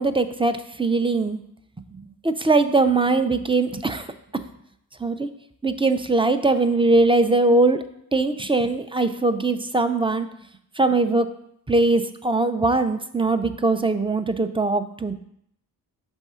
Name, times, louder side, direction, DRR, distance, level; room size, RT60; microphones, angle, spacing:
voice 1, 0.0-1.4 2.2-4.0 5.0-5.3 5.6-7.8 8.1-10.3 10.8-11.3 11.7-15.2, right 3 dB, 15° right, 8 dB, 0.4 m, -21 dB
5.4 x 3.6 x 5.6 m, 0.72 s
cardioid pair, 45°, 38 cm